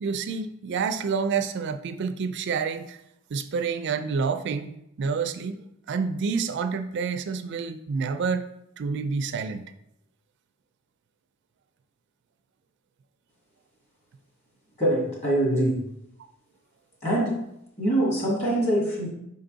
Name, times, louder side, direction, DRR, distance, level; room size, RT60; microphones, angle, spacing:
voice 1, 0.0-3.0 3.3-5.6 5.9-8.5 8.8-9.6, right 5 dB, 60° right, 8 dB, 0.4 m, -28 dB
voice 2, 14.8-15.8 17.0-17.3 17.8-19.1, right 1 dB, 35° left, -4 dB, 2.3 m, -23 dB
5.4 x 4.5 x 3.9 m, 0.80 s
head